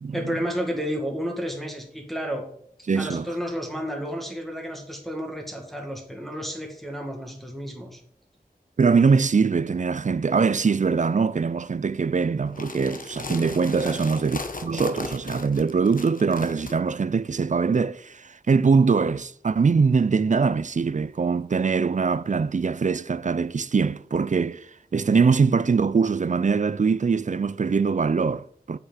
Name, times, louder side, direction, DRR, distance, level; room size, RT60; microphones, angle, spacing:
voice 1, 0.1-2.4 3.0-8.0 13.8-14.0, equal, ahead, 2.0 m, -31 dB
voice 2, 2.9-3.3 8.8-24.7 24.9-28.8, right 5 dB, 50° right, 0.4 m, -22 dB
sound 1, 12.5-16.7, left 3 dB, 55° left, 1.1 m, -36 dB
8.0 x 5.9 x 5.6 m
wide cardioid pair, 45°, 16 cm